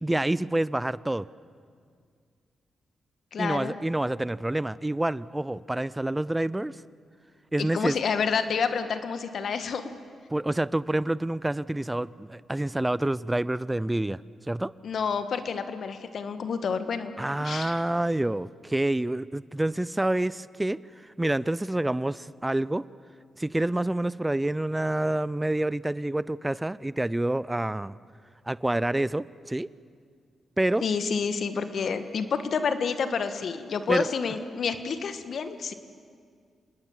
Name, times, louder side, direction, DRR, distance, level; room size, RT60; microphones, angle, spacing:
voice 1, 0.0-1.3 3.4-6.8 7.5-8.0 10.3-14.2 14.5-14.7 17.2-22.8 23.4-28.0 28.5-29.7 30.6-30.9 33.9-34.1, right 1 dB, 15° right, 19 dB, 0.5 m, -27 dB
voice 2, 3.3-3.7 7.6-9.9 14.8-17.1 17.4-17.8 30.8-35.7, left 6 dB, 65° left, 10 dB, 1.6 m, -29 dB
27.5 x 19.5 x 7.3 m, 2.1 s
supercardioid pair, 45°, 0 cm